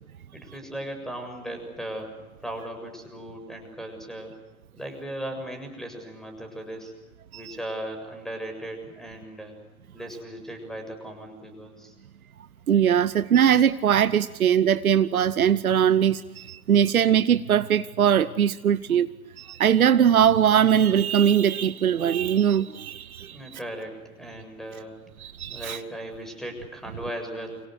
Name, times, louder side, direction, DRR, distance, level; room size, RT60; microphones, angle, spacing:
voice 1, 0.3-4.3 4.7-6.9 7.3-9.5 9.9-11.9 23.2-25.0 25.5-27.6, right 1 dB, ahead, 6 dB, 7.0 m, -37 dB
voice 2, 12.7-23.4 25.2-25.8, right 9 dB, 75° right, 15 dB, 1.0 m, -21 dB
29.0 x 26.5 x 6.6 m, 1.1 s
figure-of-eight pair, 95°, 43 cm